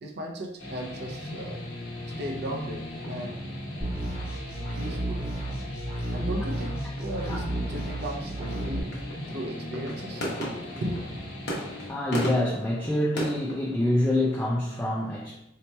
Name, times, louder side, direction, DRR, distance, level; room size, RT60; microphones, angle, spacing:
voice 1, 0.0-1.6 2.2-3.6 4.8-5.3 6.1-9.0 9.3-11.2, right 1 dB, 55° right, 2 dB, 0.5 m, -36 dB
sound 1, 0.6-11.9, left 1 dB, 80° left, 1.1 m, -38 dB
sound 2, 1.6-14.5, equal, 55° left, 0.9 m, -39 dB
sound 3, 3.8-8.8, right 1 dB, 25° right, 1.1 m, -33 dB
voice 2, 11.9-15.3, left 1 dB, 10° left, -4 dB, 0.3 m, -26 dB
4.1 x 2.8 x 2.2 m, 0.82 s
head